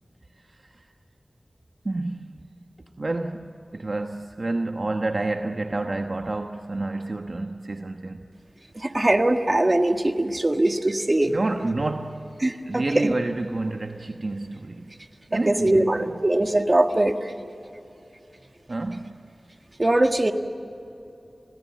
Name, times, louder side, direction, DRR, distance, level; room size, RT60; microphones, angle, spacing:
voice 1, 0.4-0.8 1.8-2.4 3.0-8.3 11.2-14.9 15.3-16.2 18.7-19.2, right 2 dB, 55° right, 5 dB, 1.1 m, -29 dB
voice 2, 8.7-11.3 12.4-13.1 15.5-17.3 19.8-20.3, right 1 dB, 35° right, 6 dB, 1.7 m, -21 dB
27.5 x 17.5 x 8.6 m, 2.9 s
wide cardioid pair, 45°, 0 cm